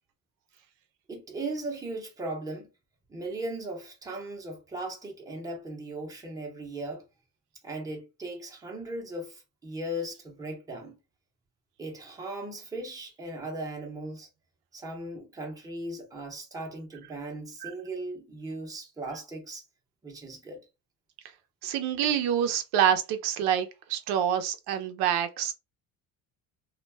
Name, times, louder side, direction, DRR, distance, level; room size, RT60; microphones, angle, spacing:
voice 1, 1.1-2.7 3.1-7.1 7.6-11.0 11.8-14.3 14.7-19.6 20.0-20.7, right 1 dB, 10° right, 0.7 m, -38 dB
voice 2, 21.6-25.5, right 9 dB, 80° right, 0.6 m, -27 dB
2.3 x 2.1 x 3.2 m
cardioid pair, 155°, 38 cm